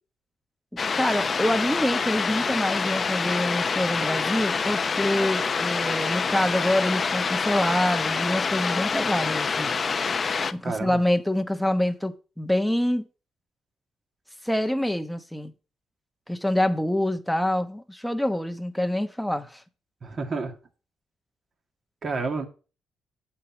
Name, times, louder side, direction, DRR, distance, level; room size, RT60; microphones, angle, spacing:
sound 1, 0.8-10.5, left 5 dB, 40° left, 0.6 m, -26 dB
voice 1, 1.0-9.7 10.5-13.0 14.4-15.5 16.3-19.6, left 1 dB, ahead, 1.0 m, -26 dB
voice 2, 10.6-11.0 20.0-20.5 22.0-22.5, right 4 dB, 45° right, 2.3 m, -30 dB
8.4 x 4.7 x 7.2 m
cardioid pair, 90°, 0 cm